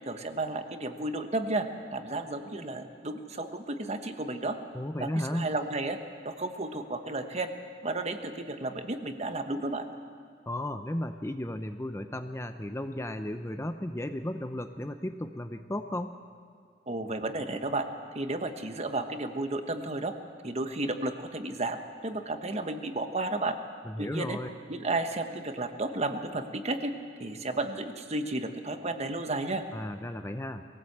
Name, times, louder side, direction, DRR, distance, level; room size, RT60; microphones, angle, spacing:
voice 1, 0.1-4.6 5.0-6.0 6.2-7.5 7.8-9.8 16.9-17.9 18.1-20.1 20.4-23.6 24.0-24.4 24.7-26.9 27.2-29.6, right 2 dB, 35° right, 7 dB, 1.3 m, -33 dB
voice 2, 4.7-5.5 10.5-16.2 23.8-24.5 29.7-30.6, left 1 dB, 15° left, 8 dB, 0.7 m, -34 dB
22.0 x 17.0 x 8.0 m, 2.3 s
head